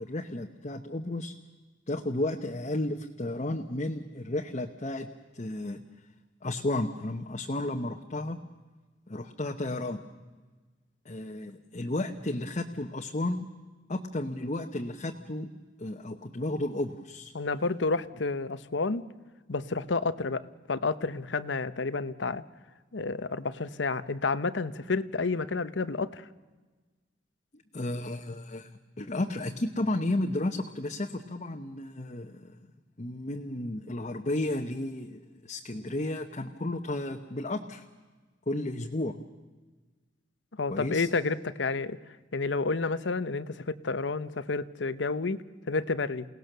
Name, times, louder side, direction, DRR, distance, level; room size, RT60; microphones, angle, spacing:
voice 1, 0.0-1.3 1.9-5.1 5.3-5.8 6.4-8.4 9.1-10.0 11.0-13.5 13.9-15.5 15.8-17.3 27.7-28.7 29.0-32.6 33.0-37.8 38.5-39.2 40.7-41.1, left 1 dB, 40° left, 3 dB, 1.0 m, -33 dB
voice 2, 17.3-19.0 19.5-22.4 22.9-26.2 40.6-42.0 42.3-46.3, left 3 dB, 85° left, 14 dB, 0.9 m, -30 dB
28.5 x 18.0 x 6.8 m, 1.3 s
head